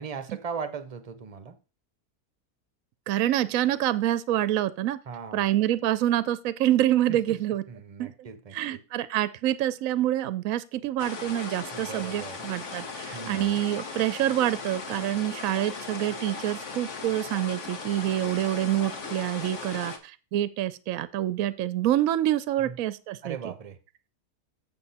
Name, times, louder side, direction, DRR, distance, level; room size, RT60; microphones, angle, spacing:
voice 1, 0.0-1.6 5.1-5.5 7.1-7.4 7.7-8.8 11.7-12.4 13.1-13.6 22.6-22.8 23.2-23.8, right 6 dB, 35° right, 0.7 m, -38 dB
voice 2, 3.1-5.0 5.3-7.6 8.0-8.1 8.5-19.9 20.3-23.4, right 13 dB, 70° right, 0.9 m, -26 dB
sound 1, 11.0-20.0, left 4 dB, 55° left, 1.4 m, -38 dB
7.8 x 7.3 x 4.1 m
omnidirectional pair, 1.7 m